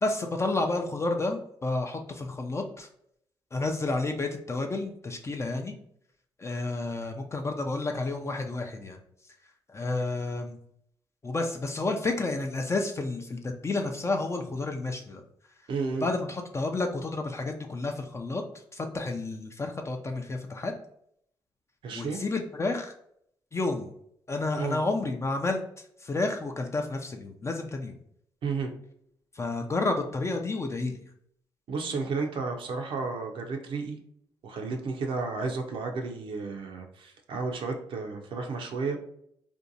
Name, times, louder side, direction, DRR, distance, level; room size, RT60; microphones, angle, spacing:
voice 1, 0.0-2.9 3.5-5.8 6.4-9.0 9.7-10.6 11.2-15.2 16.0-18.4 18.7-20.7 21.9-22.9 23.5-23.9 24.3-28.0 29.3-31.0, left 2 dB, 30° left, 3 dB, 0.4 m, -30 dB
voice 2, 15.7-16.1 21.8-22.2 24.6-24.8 28.4-28.7 31.7-34.0 34.4-39.0, right 4 dB, 65° right, 3 dB, 0.5 m, -32 dB
2.6 x 2.1 x 2.6 m, 0.69 s
supercardioid pair, 55°, 10 cm